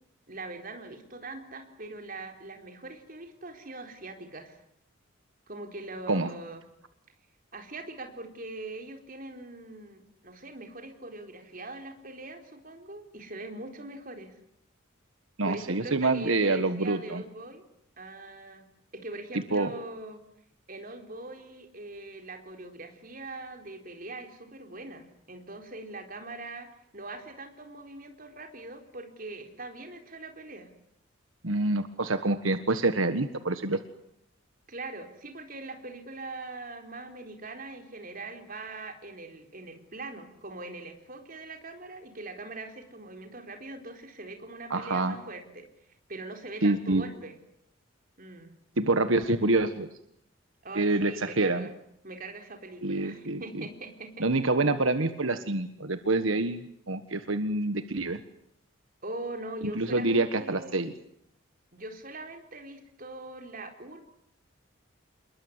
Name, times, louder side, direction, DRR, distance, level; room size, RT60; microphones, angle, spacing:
voice 1, 0.3-4.6 5.5-6.7 7.5-14.3 15.4-17.6 18.0-18.7 18.9-20.2 20.7-26.7 26.9-30.7 34.7-45.7 46.1-47.4 48.2-48.5 50.6-51.7 52.0-54.2 59.0-61.0 61.7-64.0, right 2 dB, 45° right, 4 dB, 4.4 m, -42 dB
voice 2, 15.4-17.2 19.5-19.7 31.4-33.8 44.7-45.1 46.6-47.0 48.8-49.9 50.7-51.7 52.8-53.4 54.2-56.6 56.9-58.2 59.7-60.9, right 2 dB, 80° right, 9 dB, 1.5 m, -26 dB
28.0 x 22.0 x 9.6 m, 0.74 s
head